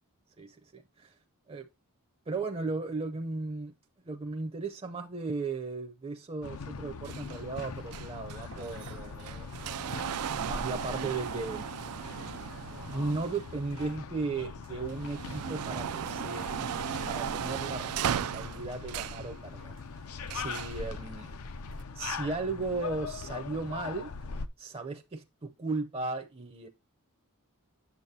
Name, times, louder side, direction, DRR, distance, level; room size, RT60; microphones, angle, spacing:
voice 1, 0.4-1.1 1.5-1.7 2.3-3.7 4.1-9.5 10.3-11.7 12.8-16.7 16.9-19.7 20.1-21.3 22.0-24.1 24.6-26.7, right 3 dB, 25° right, 0.6 m, -36 dB
sound 1, 6.4-24.5, left 4 dB, 70° left, 0.6 m, -41 dB
sound 2, 7.1-14.3 14.7-19.3 20.3-20.8 21.7-21.8, right 9 dB, 80° right, 0.4 m, -37 dB
8.2 x 7.1 x 2.7 m
head